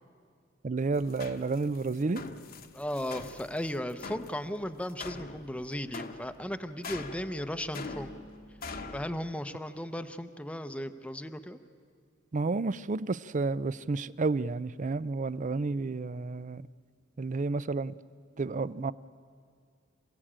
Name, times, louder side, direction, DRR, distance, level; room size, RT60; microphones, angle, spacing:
voice 1, 0.6-2.2 12.3-16.7 17.2-18.0 18.4-18.9, right 3 dB, 40° right, 18 dB, 0.5 m, -31 dB
sound 1, 0.9-9.1, left 3 dB, 50° left, 1.2 m, -44 dB
voice 2, 2.7-8.1 8.9-11.6, equal, 5° left, 9 dB, 0.8 m, -36 dB
27.5 x 16.0 x 8.8 m, 2.2 s
head